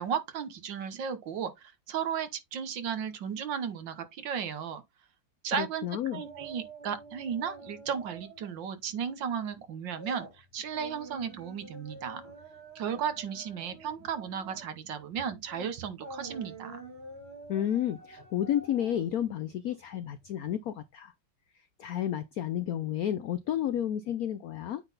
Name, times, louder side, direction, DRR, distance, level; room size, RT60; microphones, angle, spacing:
voice 1, 0.0-4.8 5.4-5.9 6.1-12.2 12.8-16.8, right 7 dB, 70° right, 1.7 m, -35 dB
voice 2, 5.5-6.2 17.5-21.1 21.8-24.8, left 10 dB, 75° left, 0.8 m, -31 dB
sound 1, 6.1-8.6 8.9-9.1 9.5-20.5 20.8-20.9, right 3 dB, 85° right, 4.1 m, -48 dB
8.7 x 3.9 x 4.0 m
omnidirectional pair, 2.2 m